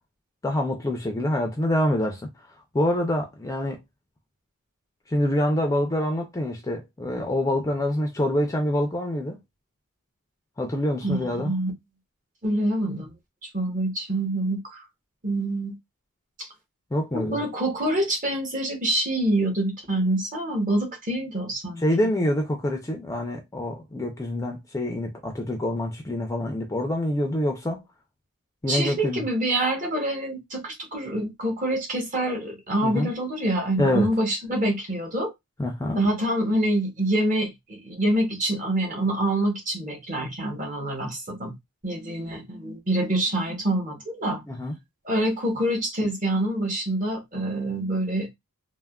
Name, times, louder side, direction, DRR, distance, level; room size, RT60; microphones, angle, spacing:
voice 1, 0.4-2.2 2.7-3.8 5.1-9.4 10.6-11.5 16.9-17.4 21.8-27.8 28.6-29.2 32.8-33.1 33.8-34.1 35.6-36.0 44.5-44.7, left 1 dB, 15° left, 0.4 m, -26 dB
voice 2, 11.0-11.7 12.4-13.1 13.5-14.8 15.2-15.7 16.4-16.5 17.1-22.1 28.7-35.3 36.0-41.5 41.8-44.4 45.0-48.3, right 1 dB, 35° right, 0.9 m, -26 dB
3.3 x 2.1 x 2.2 m
head